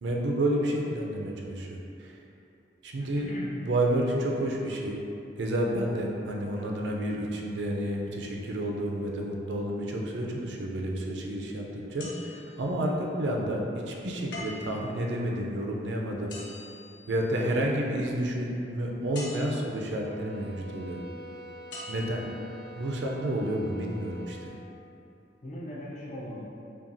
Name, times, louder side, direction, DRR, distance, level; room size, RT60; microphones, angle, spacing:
voice 1, 0.0-2.1 2.8-3.3 3.6-5.0 5.4-16.3 17.1-21.0 21.9-22.2 22.8-24.6, right 1 dB, 85° right, -1 dB, 0.5 m, -30 dB
voice 2, 3.0-3.5 25.4-26.4, equal, 40° left, -5 dB, 0.6 m, -40 dB
sound 1, 12.0-13.0 14.3-14.9 16.3-17.6 19.1-19.9 21.7-22.4 23.0-23.1, left 2 dB, 90° left, 0.7 m, -43 dB
sound 2, 19.9-24.6, equal, 35° right, 0.5 m, -46 dB
5.7 x 2.3 x 2.6 m, 2.7 s
head